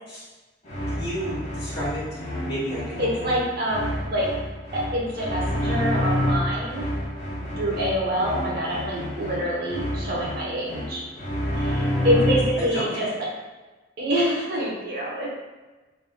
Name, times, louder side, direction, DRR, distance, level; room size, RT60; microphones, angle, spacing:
sound 1, 0.6-12.7, left 1 dB, 35° left, 0.8 m, -29 dB
voice 1, 0.9-3.0 12.6-13.1, equal, 60° left, -7 dB, 1.4 m, -32 dB
voice 2, 3.0-4.3 4.7-6.9 7.6-11.0 11.6-13.3 14.0-15.3, equal, 55° right, -4 dB, 0.9 m, -26 dB
4.0 x 3.9 x 2.3 m, 1.2 s
head